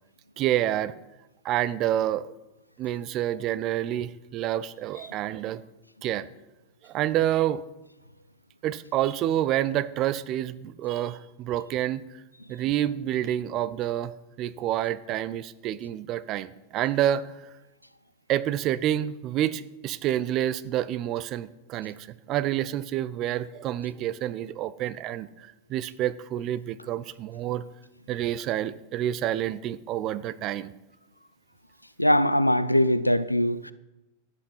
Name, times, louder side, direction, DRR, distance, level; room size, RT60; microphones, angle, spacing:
voice 1, 0.4-0.9 1.4-2.3 2.8-5.6 6.0-6.3 6.8-7.6 8.6-12.0 12.5-14.1 14.4-17.3 18.3-27.6 28.1-30.7, right 12 dB, 35° right, 0.5 m, -28 dB
voice 2, 32.0-33.7, left 1 dB, 85° left, 0.4 m, -21 dB
11.5 x 8.0 x 5.6 m
figure-of-eight pair, 90°, 0 cm